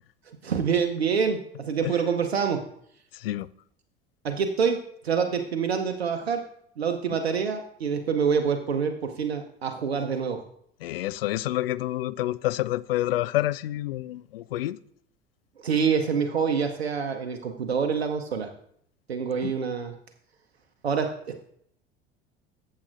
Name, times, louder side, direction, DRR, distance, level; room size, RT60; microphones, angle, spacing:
voice 1, 0.3-2.7 4.2-6.5 6.8-10.4 15.6-18.5 19.1-19.9 20.8-21.4, right 6 dB, 75° right, 0.8 m, -26 dB
voice 2, 3.1-3.5 10.8-14.8 19.4-19.5, left 15 dB, 65° left, 0.5 m, -28 dB
14.0 x 7.5 x 2.5 m
figure-of-eight pair, 70°, 31 cm